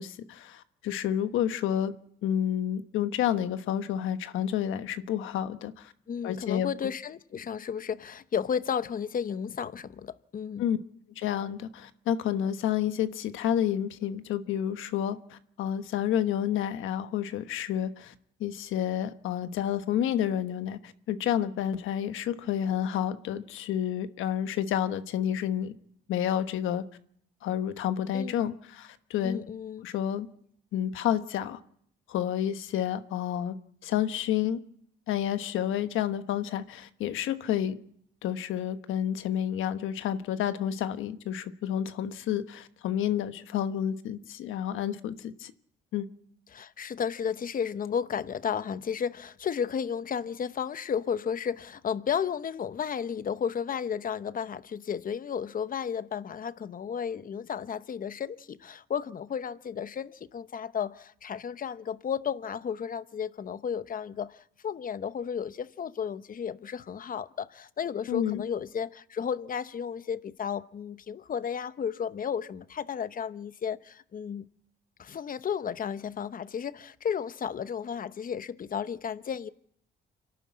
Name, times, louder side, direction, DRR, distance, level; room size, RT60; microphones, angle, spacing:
voice 1, 0.0-1.9 2.2-5.9 6.2-6.7 10.6-10.8 11.2-18.1 18.4-25.7 26.1-26.8 27.4-29.4 29.8-30.3 30.7-31.6 32.1-33.5 33.8-34.6 35.1-37.8 38.2-45.5 45.9-46.1 68.1-68.5, left 10 dB, 85° left, 1.2 m, -30 dB
voice 2, 6.1-10.7 28.1-28.5 29.2-29.9 46.5-74.5 75.0-79.5, left 7 dB, 45° left, 0.9 m, -33 dB
26.5 x 12.0 x 8.6 m
cardioid pair, 90°, 20 cm